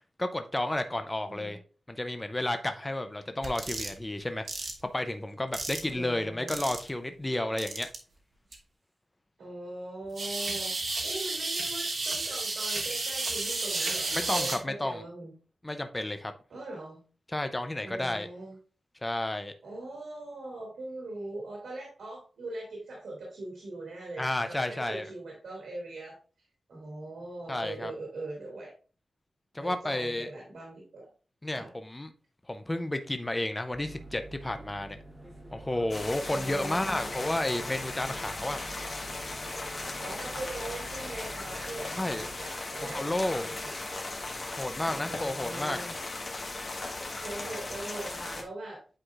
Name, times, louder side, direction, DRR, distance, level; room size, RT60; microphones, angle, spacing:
voice 1, 0.2-1.6 1.9-4.5 4.9-7.9 14.1-15.0 15.6-16.3 17.3-18.3 19.0-19.5 24.2-25.1 27.5-27.9 29.5-30.3 31.4-32.1 32.5-35.0 35.5-38.6 41.9-42.2 42.9-43.5 44.6-45.8, left 1 dB, 15° left, 8 dB, 0.5 m, -31 dB
sound 1, 3.4-3.9 4.5-4.7 5.5-5.9 6.5-6.9 7.6-8.0 8.5-8.6 10.2-14.6, right 3 dB, 50° right, 1.2 m, -32 dB
voice 2, 5.9-6.6 9.4-10.7 11.0-15.3 16.5-17.0 17.8-18.6 19.6-26.2 26.7-28.7 29.6-31.0 31.5-31.7 36.3-37.1 40.0-43.7 45.0-46.0 47.2-48.8, right 2 dB, 90° right, -3 dB, 2.5 m, -41 dB
sound 2, 33.7-42.3, right 2 dB, 15° right, 1.1 m, -47 dB
sound 3, 35.9-48.4, left 2 dB, 40° left, 1.2 m, -37 dB
8.8 x 4.7 x 2.4 m, 0.37 s
wide cardioid pair, 130°, 0 cm